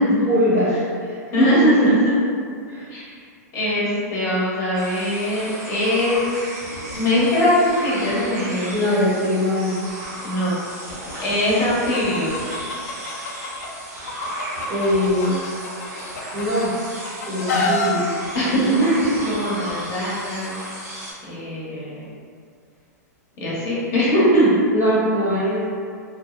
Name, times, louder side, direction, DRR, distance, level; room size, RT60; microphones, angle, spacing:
voice 1, 0.3-1.9 2.7-2.9 8.7-9.7 14.7-15.4 16.3-16.7 17.3-18.1 24.7-25.6, equal, 15° right, -11 dB, 0.9 m, -21 dB
voice 2, 1.3-2.1 2.9-3.1 3.5-6.2 6.9-8.7 10.2-10.6 11.2-12.3 17.5-17.7 18.3-20.6 21.3-22.1 23.4-24.6 25.1-25.6, equal, 30° left, -7 dB, 0.9 m, -21 dB
sound 1, 4.7-21.1, right 1 dB, 75° right, 1.2 m, -34 dB
Chicken rooster, 11.9-13.7 14.1-16.7 17.0-17.9, left 3 dB, 70° left, 0.4 m, -26 dB
2.6 x 2.0 x 2.4 m, 2.2 s
hypercardioid pair, 125°, 9 cm